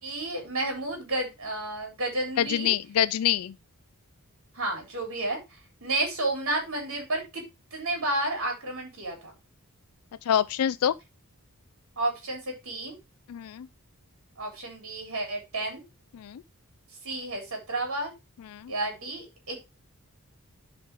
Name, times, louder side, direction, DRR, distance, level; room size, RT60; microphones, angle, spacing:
voice 1, 0.0-2.7 4.5-7.4 7.7-9.4 12.0-13.0 14.4-15.8 17.0-18.1 18.7-19.7, right 2 dB, 65° right, 3.8 m, -31 dB
voice 2, 2.4-3.5 10.3-10.9 13.3-13.7 16.2-16.4 18.5-18.7, left 10 dB, 75° left, 0.4 m, -26 dB
11.0 x 5.0 x 3.5 m
head